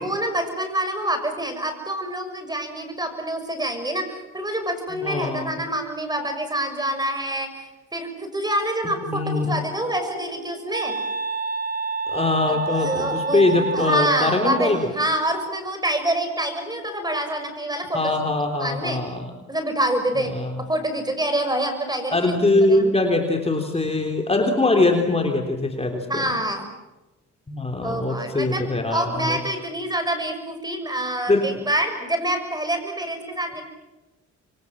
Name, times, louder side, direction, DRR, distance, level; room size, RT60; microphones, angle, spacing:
voice 1, 0.0-10.9 12.5-18.3 18.6-19.0 19.5-20.3 20.6-22.9 26.1-26.7 27.8-33.6, right 1 dB, 15° right, 7 dB, 6.3 m, -27 dB
voice 2, 5.0-5.6 9.1-9.5 12.1-14.9 17.9-19.3 20.3-20.6 22.1-26.3 27.5-29.4 31.3-31.6, left 2 dB, 20° left, 3 dB, 3.6 m, -22 dB
Wind instrument woodwind instrument, 9.5-14.8, right 4 dB, 30° right, 1.1 m, -29 dB
27.5 x 23.5 x 7.5 m, 1.1 s
cardioid pair, 90°, 30 cm